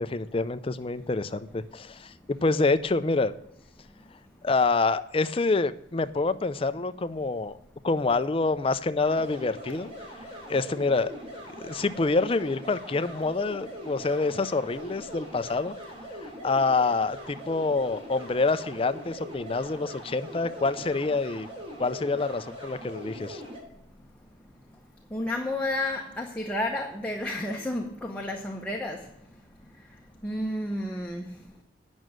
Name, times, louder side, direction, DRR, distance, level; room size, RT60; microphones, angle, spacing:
voice 1, 0.0-3.3 4.4-7.6 7.8-9.9 10.5-11.1 11.6-15.7 16.2-21.5 21.8-23.4, left 3 dB, 30° left, 0.5 m, -27 dB
sound 1, 9.0-23.6, equal, 30° right, 2.9 m, -42 dB
voice 2, 25.1-31.5, left 1 dB, 10° left, 0.9 m, -32 dB
9.2 x 6.2 x 7.7 m
head